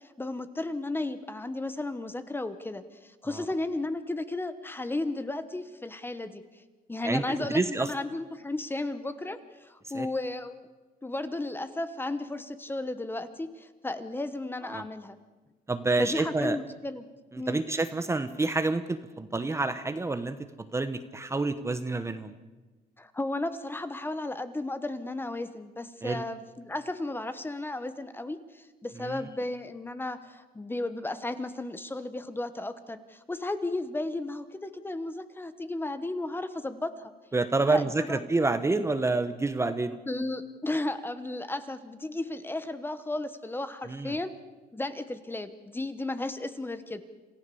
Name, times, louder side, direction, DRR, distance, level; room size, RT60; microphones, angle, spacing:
voice 1, 0.0-6.4 6.9-10.6 11.0-15.2 16.0-17.0 17.4-17.6 23.0-37.1 37.7-38.3 40.1-44.3 44.7-47.0, left 2 dB, 10° left, 11 dB, 1.2 m, -34 dB
voice 2, 7.5-7.9 9.9-10.1 14.7-14.8 15.7-16.6 17.5-20.4 20.7-22.3 26.0-26.2 29.0-29.3 37.3-40.0 43.9-44.2, right 3 dB, 15° right, 10 dB, 1.0 m, -28 dB
27.0 x 15.0 x 7.0 m, 1.2 s
cardioid pair, 110°, 17 cm